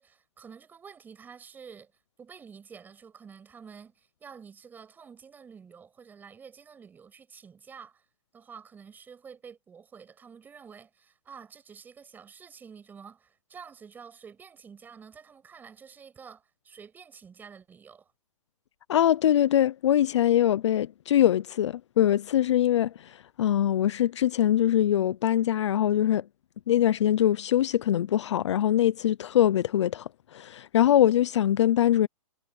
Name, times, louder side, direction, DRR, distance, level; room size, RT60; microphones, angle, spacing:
voice 1, 0.0-1.9 2.2-8.0 8.3-18.1, right 6 dB, 10° right, 7.4 m, -49 dB
voice 2, 18.9-26.2 26.7-32.1, left 11 dB, 50° left, 0.7 m, -23 dB
hypercardioid pair, 160°, 19 cm